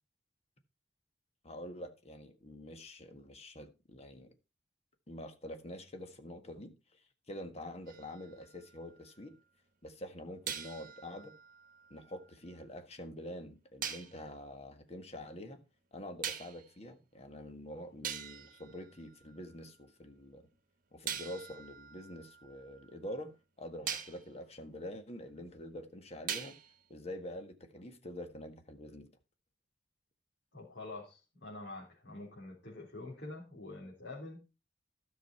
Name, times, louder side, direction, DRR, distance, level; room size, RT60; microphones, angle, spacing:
voice 1, 1.4-4.3 5.1-7.0 7.3-9.3 9.8-11.3 11.9-15.6 15.9-20.5 20.9-26.6 26.9-29.1, left 1 dB, 35° left, 1.6 m, -46 dB
sound 1, 7.9-9.3 10.5-12.6 13.8-14.2 16.2-16.8 17.5-17.6 18.0-19.7 21.1-23.2 23.9-24.3 26.3-26.9, right 8 dB, 50° right, 1.1 m, -43 dB
voice 2, 30.5-34.4, left 2 dB, 70° left, 3.9 m, -46 dB
12.5 x 6.4 x 4.4 m
head